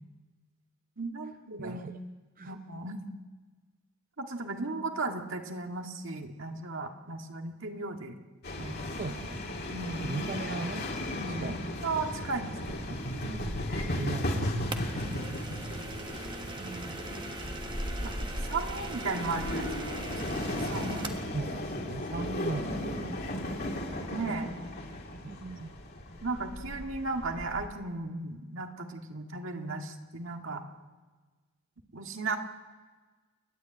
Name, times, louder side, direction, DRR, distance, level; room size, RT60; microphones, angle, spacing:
voice 1, 1.0-1.8 2.5-3.0 4.2-8.1 8.6-8.8 9.7-10.2 11.2-11.5 11.8-13.1 18.0-18.1 18.5-20.3 20.7-21.1 24.1-24.5 26.2-30.6 31.9-32.4, right 3 dB, 65° right, 4 dB, 1.9 m, -36 dB
voice 2, 1.6-2.0 2.4-2.6 8.9-9.4 10.0-10.9 11.3-11.8 13.1-15.4 16.6-17.0 20.7-23.8 25.2-25.7, right 3 dB, 40° right, 8 dB, 0.6 m, -39 dB
sound 1, 8.4-27.7, left 1 dB, 50° left, 3.1 m, -35 dB
sound 2, 14.7-21.3, right 3 dB, 20° right, 1.3 m, -42 dB
29.5 x 11.0 x 9.3 m, 1.3 s
head